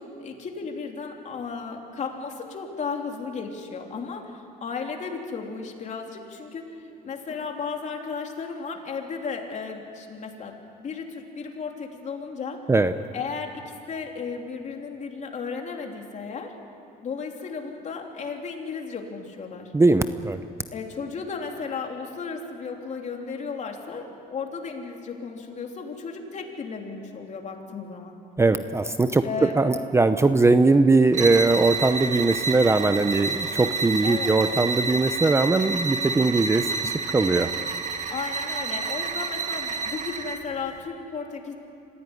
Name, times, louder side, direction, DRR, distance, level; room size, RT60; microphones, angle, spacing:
voice 1, 0.0-6.7 7.0-12.6 13.1-16.5 17.0-19.7 20.7-28.1 29.2-29.6 34.0-34.3 38.1-41.5, left 5 dB, 45° left, 2 dB, 3.3 m, -34 dB
voice 2, 19.7-20.4 28.4-29.2 29.6-37.5, right 3 dB, 15° right, 10 dB, 0.7 m, -20 dB
sound 1, 31.1-40.5, right 4 dB, 45° right, 1.8 m, -29 dB
26.0 x 16.0 x 9.9 m, 2.5 s
cardioid pair, 110°, 17 cm